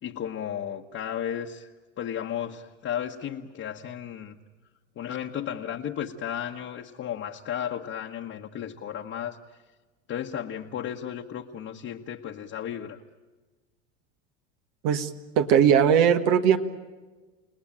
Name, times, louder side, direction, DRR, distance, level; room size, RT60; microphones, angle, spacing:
voice 1, 0.0-1.7 2.0-4.4 5.0-9.4 10.1-13.0, left 9 dB, 35° left, 1 dB, 1.3 m, -34 dB
voice 2, 15.4-16.6, right 8 dB, 65° right, 8 dB, 1.6 m, -19 dB
30.0 x 18.5 x 8.9 m, 1.3 s
supercardioid pair, 100°, 37 cm